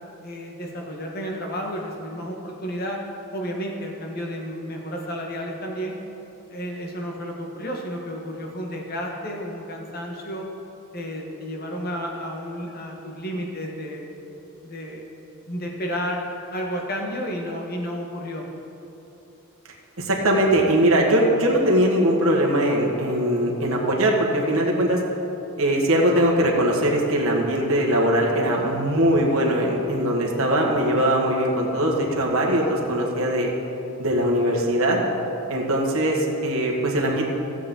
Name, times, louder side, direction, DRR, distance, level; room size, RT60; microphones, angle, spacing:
voice 1, 0.2-3.0 3.3-5.9 6.5-10.5 10.9-14.1 14.6-15.1 15.5-16.3 16.5-18.5, equal, 45° left, 0 dB, 1.4 m, -31 dB
voice 2, 20.0-25.0 25.6-33.5 34.0-35.0 35.5-37.2, right 1 dB, 65° right, -1 dB, 1.5 m, -21 dB
15.5 x 7.5 x 3.8 m, 3.0 s
head